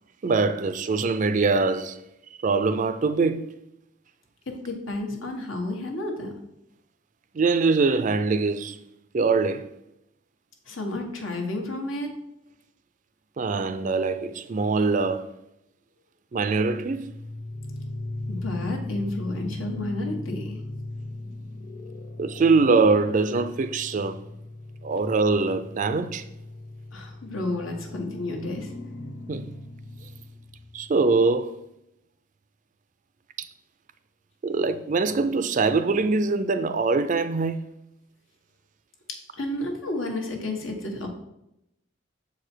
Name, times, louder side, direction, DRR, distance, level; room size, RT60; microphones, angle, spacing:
voice 1, 0.2-2.0 2.4-3.5 7.3-8.8 9.1-9.7 13.4-15.3 16.3-17.1 22.2-24.2 24.8-26.2 29.3-29.5 30.7-31.5 33.4-33.5 34.4-37.6, right 4 dB, 40° right, 0.4 m, -23 dB
voice 2, 4.5-6.3 10.7-12.1 18.3-20.6 26.9-28.7 39.4-41.1, left 2 dB, 80° left, 1.5 m, -31 dB
sound 1, 16.7-31.2, left 1 dB, 45° left, 0.8 m, -38 dB
6.9 x 4.8 x 4.5 m
head